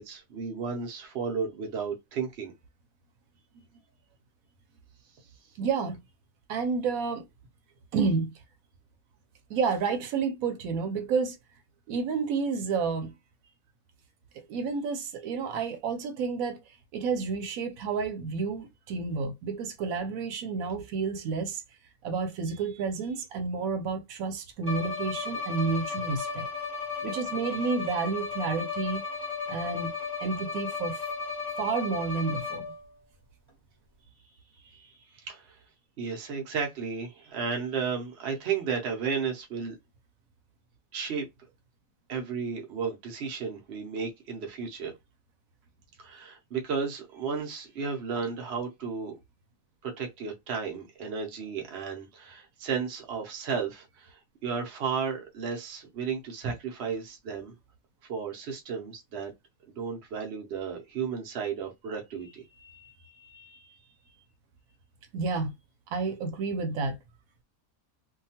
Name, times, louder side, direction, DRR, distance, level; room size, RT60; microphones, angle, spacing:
voice 1, 0.0-2.5 27.6-27.7 34.6-35.6 36.0-39.7 40.9-41.2 42.1-44.9 46.0-49.2 49.8-57.5 58.1-59.3 59.7-63.8, right 6 dB, 55° right, 0.9 m, -34 dB
voice 2, 5.6-6.0 6.5-7.2 7.9-8.3 9.5-11.4 11.9-13.1 14.5-16.6 16.9-21.6 22.0-26.5 27.0-29.0 29.5-29.9 30.2-31.1 31.6-32.6 56.4-56.5 65.1-65.5 65.9-67.0, right 5 dB, 85° right, 1.0 m, -30 dB
Bowed string instrument, 24.6-32.9, left 5 dB, 20° right, 1.0 m, -35 dB
2.8 x 2.2 x 2.7 m
omnidirectional pair, 1.4 m